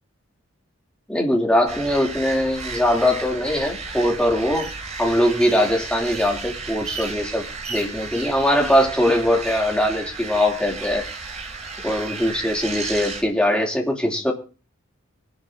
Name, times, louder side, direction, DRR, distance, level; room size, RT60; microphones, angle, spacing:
voice 1, 1.1-4.7 5.0-11.1 11.8-14.3, left 1 dB, 5° left, 0 dB, 2.9 m, -21 dB
sound 1, 1.7-13.2, right 4 dB, 35° right, 3.7 m, -33 dB
23.5 x 11.5 x 2.7 m, 0.35 s
head